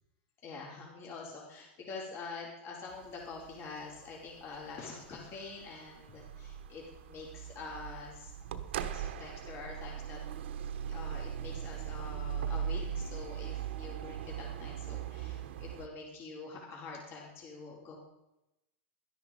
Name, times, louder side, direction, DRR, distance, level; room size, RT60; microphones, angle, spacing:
voice 1, 0.4-8.3 8.9-10.2 10.7-18.0, left 4 dB, 40° left, -2 dB, 4.8 m, -46 dB
sound 1, 2.9-15.9, right 8 dB, 85° right, 1.2 m, -40 dB
13.0 x 11.0 x 5.4 m, 0.92 s
supercardioid pair, 120°, 6 cm